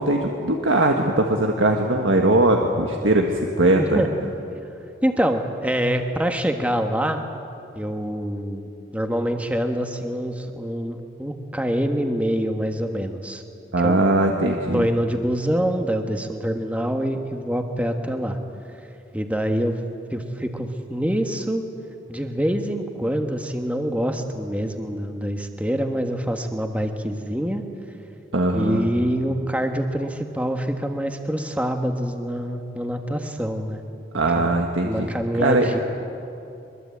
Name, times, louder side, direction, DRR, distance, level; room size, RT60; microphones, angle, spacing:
voice 1, 0.0-4.0 13.7-14.9 28.3-28.9 34.1-35.1 35.3-35.7, right 2 dB, 90° right, 2 dB, 1.6 m, -20 dB
voice 2, 5.0-7.2 7.7-13.4 13.8-14.1 14.7-18.4 19.1-19.8 20.1-21.6 22.1-27.6 28.5-33.8 34.3-34.5 34.8-35.8, equal, 5° right, 5 dB, 1.4 m, -25 dB
24.0 x 22.5 x 8.6 m, 2.8 s
head